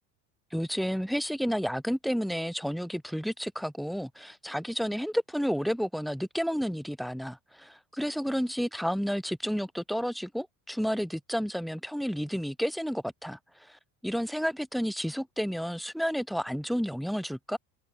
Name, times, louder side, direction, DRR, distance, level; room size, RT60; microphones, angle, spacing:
voice 1, 0.5-17.6, equal, ahead, 1.9 m, -31 dB
cardioid pair, 160°, 38 cm